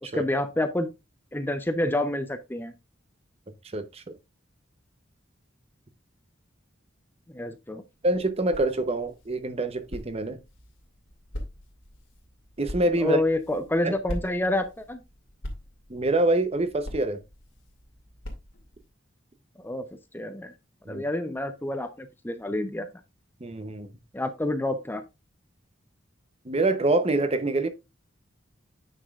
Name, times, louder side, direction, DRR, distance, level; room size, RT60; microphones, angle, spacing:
voice 1, 0.0-0.9 1.3-2.7 7.3-7.8 13.0-15.0 19.6-19.9 20.1-20.5 20.9-22.9 24.1-25.0, left 1 dB, 10° left, 0.6 m, -28 dB
voice 2, 3.7-4.0 8.0-10.4 12.6-13.2 15.9-17.2 20.9-21.0 23.4-23.9 26.5-27.7, right 2 dB, 30° right, 0.8 m, -25 dB
sound 1, 8.0-18.9, left 1 dB, 85° left, 2.3 m, -42 dB
9.1 x 6.0 x 2.4 m
head